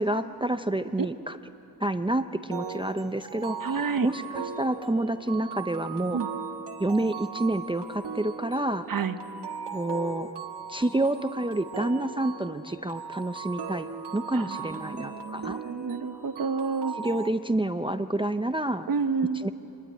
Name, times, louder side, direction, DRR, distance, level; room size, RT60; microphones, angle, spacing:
voice 1, 0.0-1.4 1.8-6.2 6.8-8.9 9.7-10.3 10.7-13.9 14.1-15.6 16.9-18.9 19.3-19.5, right 1 dB, 15° right, 10 dB, 0.5 m, -28 dB
sound 1, 2.5-17.3, right 6 dB, 90° right, 1.5 m, -38 dB
voice 2, 3.6-4.1 6.1-6.3 8.9-9.2 14.3-16.9 18.9-19.5, right 5 dB, 55° right, 9 dB, 1.1 m, -29 dB
25.5 x 20.5 x 9.0 m, 2.8 s
wide cardioid pair, 150°, 40 cm